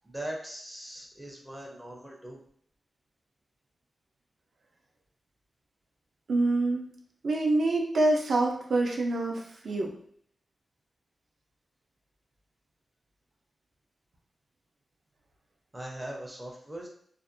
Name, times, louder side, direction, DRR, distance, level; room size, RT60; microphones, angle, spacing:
voice 1, 0.0-2.4 15.7-16.9, right 1 dB, 15° right, -1 dB, 0.5 m, -40 dB
voice 2, 6.3-6.9 7.2-9.9, right 2 dB, 65° right, 0 dB, 0.5 m, -26 dB
2.5 x 2.1 x 2.5 m, 0.63 s
wide cardioid pair, 115°, 0 cm